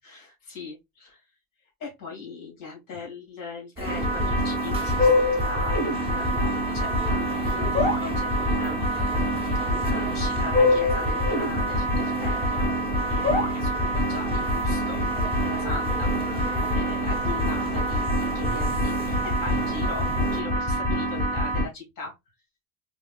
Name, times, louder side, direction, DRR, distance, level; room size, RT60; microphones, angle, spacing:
voice 1, 0.0-1.2 1.8-8.8 9.7-12.7 13.1-15.0 15.4-22.1, left 4 dB, 40° left, 2.6 m, -40 dB
sound 1, 3.8-20.4, right 4 dB, 10° right, 0.7 m, -35 dB
sound 2, 3.9-21.7, left 1 dB, 15° left, 1.5 m, -25 dB
4.5 x 3.4 x 2.4 m
cardioid pair, 150°, 50 cm